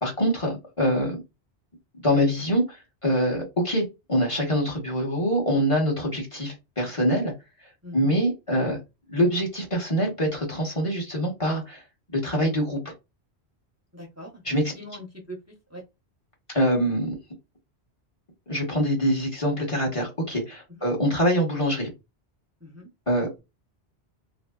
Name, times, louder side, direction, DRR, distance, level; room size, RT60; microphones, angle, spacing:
voice 1, 0.0-1.2 2.0-7.3 7.9-8.8 9.1-11.8 12.1-12.9 14.4-14.7 16.5-17.2 18.5-21.9 23.1-23.4, equal, 30° left, 1.0 m, -24 dB
voice 2, 7.8-8.2 13.9-14.4 14.7-15.4 15.7-15.8 20.7-20.9 22.6-22.9, equal, 15° right, 0.7 m, -41 dB
2.9 x 2.7 x 2.3 m
omnidirectional pair, 1.1 m